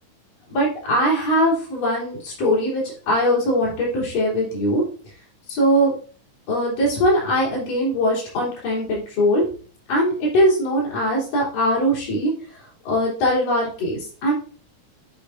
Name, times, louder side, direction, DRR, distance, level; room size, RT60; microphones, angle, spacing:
voice 1, 0.5-4.8 5.5-5.9 6.5-9.4 9.9-12.3 12.9-14.3, equal, 80° left, -6 dB, 5.2 m, -21 dB
9.5 x 4.8 x 2.7 m, 0.41 s
omnidirectional pair, 3.8 m